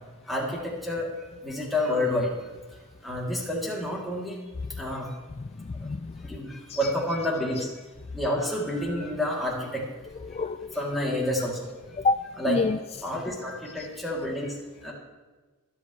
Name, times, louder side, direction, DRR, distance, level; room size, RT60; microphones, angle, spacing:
voice 1, 0.3-2.3 3.0-4.4 4.8-5.1 5.8-5.9 6.2-7.7 8.1-9.8 10.7-11.7 12.4-12.6 13.0-14.6 14.8-14.9, left 1 dB, ahead, -4 dB, 2.9 m, -29 dB
voice 2, 5.4-6.2 6.7-6.8 10.3-10.8 12.0-12.8, left 3 dB, 30° left, 9 dB, 0.3 m, -28 dB
25.0 x 8.8 x 3.2 m, 1.3 s
head